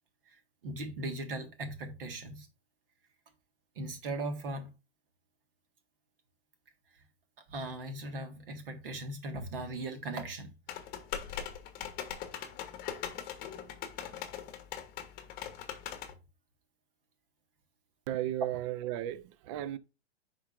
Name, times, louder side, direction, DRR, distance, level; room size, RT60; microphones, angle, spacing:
voice 1, 0.2-2.5 3.7-4.7 6.9-7.0 7.5-10.5, right 2 dB, 55° right, 1.7 m, -39 dB
sound 1, 10.7-16.1, left 9 dB, 25° left, 1.1 m, -41 dB
voice 2, 18.1-19.8, right 13 dB, 30° right, 0.5 m, -35 dB
10.0 x 3.7 x 2.5 m
figure-of-eight pair, 105°, 33 cm